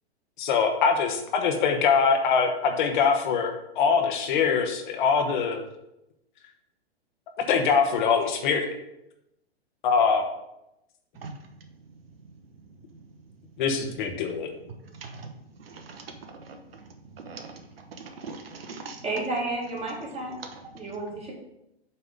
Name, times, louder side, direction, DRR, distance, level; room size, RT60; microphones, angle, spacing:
voice 1, 0.4-5.6 7.5-8.7 9.8-10.2 13.6-14.5, left 5 dB, 50° left, 4 dB, 1.1 m, -23 dB
voice 2, 14.9-15.3 15.6-19.0 20.8-20.9, right 4 dB, 65° right, 5 dB, 1.1 m, -42 dB
voice 3, 19.0-20.4 20.7-21.3, right 2 dB, 20° right, -2 dB, 2.2 m, -31 dB
8.3 x 3.6 x 5.1 m, 0.85 s
figure-of-eight pair, 110°, 32 cm